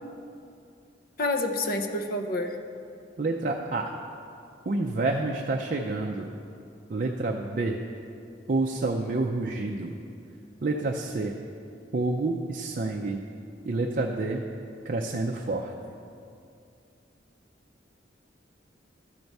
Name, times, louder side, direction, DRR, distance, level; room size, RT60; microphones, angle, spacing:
voice 1, 1.2-2.6, left 2 dB, 50° left, 5 dB, 0.6 m, -28 dB
voice 2, 3.2-3.9 4.7-6.3 6.9-7.8 8.5-10.0 10.6-11.3 11.9-13.2 13.7-14.4 14.9-15.7, right 2 dB, 45° right, 1 dB, 0.4 m, -28 dB
12.5 x 4.6 x 5.3 m, 2.5 s
head